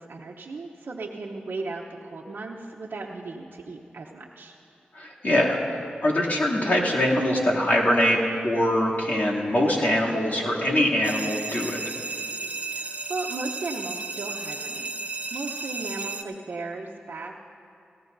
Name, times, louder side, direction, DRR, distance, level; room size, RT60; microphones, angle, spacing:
voice 1, 0.0-4.6 12.7-14.9 15.3-17.4, right 3 dB, 70° right, -3 dB, 0.8 m, -36 dB
voice 2, 4.9-11.8, left 1 dB, 55° left, -5 dB, 2.7 m, -23 dB
sound 1, 11.0-16.2, right 3 dB, 35° right, 0.8 m, -33 dB
18.5 x 16.0 x 2.7 m, 2.5 s
cardioid pair, 40°, 4 cm